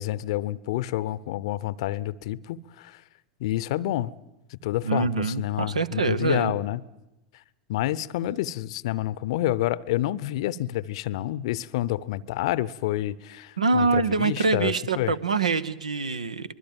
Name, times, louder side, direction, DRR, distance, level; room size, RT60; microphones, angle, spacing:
voice 1, 0.0-3.0 3.4-4.1 4.5-6.8 7.7-15.1, left 14 dB, 55° left, 0.7 m, -28 dB
voice 2, 4.8-6.6 13.6-16.5, right 4 dB, 75° right, 1.0 m, -25 dB
24.0 x 22.0 x 7.3 m
figure-of-eight pair, 85°, 4 cm